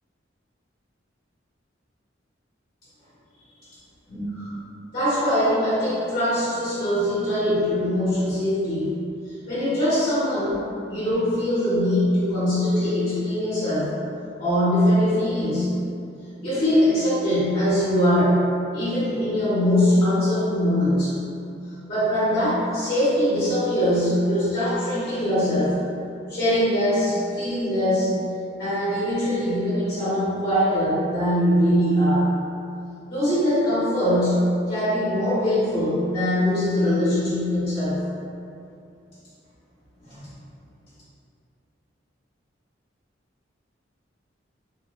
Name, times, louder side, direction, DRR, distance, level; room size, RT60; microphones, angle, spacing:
voice 1, 4.1-4.5 4.9-8.9 9.5-13.9 14.4-15.7 16.4-18.4 18.7-21.1 21.9-25.7 26.3-28.1 28.6-32.3 33.1-38.0 40.0-40.2, equal, 55° left, -13 dB, 1.2 m, -22 dB
2.7 x 2.3 x 2.4 m, 2.6 s
head